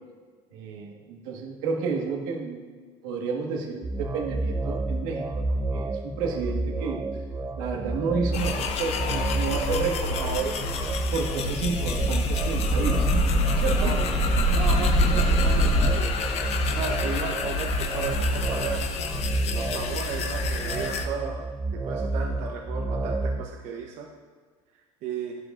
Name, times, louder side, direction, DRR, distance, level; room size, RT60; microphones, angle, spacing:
voice 1, 0.5-2.6 3.0-7.0 7.6-10.5 11.1-13.1 13.6-14.0, right 5 dB, 90° right, 1 dB, 1.5 m, -31 dB
sound 1, 3.8-23.4, right 2 dB, 20° right, 0.5 m, -30 dB
sound 2, 8.3-21.1, left 5 dB, 55° left, 0.8 m, -31 dB
sound 3, 11.4-15.9, equal, 10° left, 1.6 m, -24 dB
voice 2, 13.7-14.1 14.5-16.2 16.6-18.8 19.5-21.4 21.7-24.1 25.0-25.4, right 6 dB, 65° right, 1 dB, 0.9 m, -35 dB
11.0 x 9.9 x 2.5 m, 1.5 s
cardioid pair, 130°, 13 cm